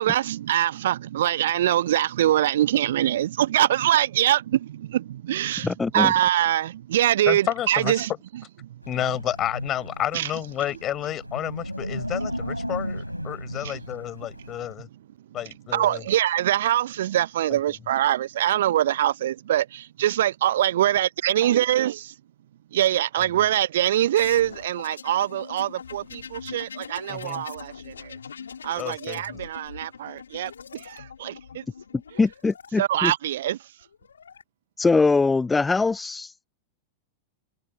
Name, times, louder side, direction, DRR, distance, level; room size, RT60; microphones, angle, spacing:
voice 1, 0.0-8.1 10.1-10.3 13.6-13.8 15.7-22.0 22.7-28.2 28.6-31.6 32.8-33.7, right 12 dB, 60° right, 0.6 m, -23 dB
voice 2, 5.6-6.1 32.2-33.1 34.8-36.5, left 4 dB, 10° left, 0.4 m, -22 dB
voice 3, 7.3-8.0 8.9-14.9 15.3-16.0 17.5-17.6 27.1-27.4 28.8-29.4, left 12 dB, 30° left, 5.9 m, -30 dB
Wind, 8.8-14.7, equal, 90° right, 4.2 m, -35 dB
sound 1, 24.1-32.7 33.8-34.4, left 7 dB, 70° left, 2.3 m, -42 dB
figure-of-eight pair, 90°, 0 cm